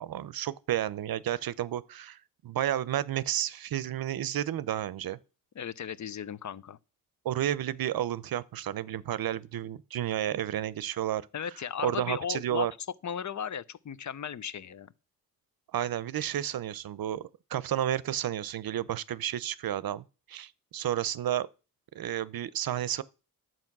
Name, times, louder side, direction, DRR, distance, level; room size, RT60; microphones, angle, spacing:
voice 1, 0.0-5.2 7.2-11.2 11.8-12.7 15.7-21.5 21.9-23.0, right 11 dB, 90° right, 0.7 m, -31 dB
voice 2, 5.6-6.8 11.3-12.7 13.0-14.9, left 8 dB, 55° left, 0.7 m, -36 dB
11.0 x 7.7 x 6.0 m
wide cardioid pair, 100°, 34 cm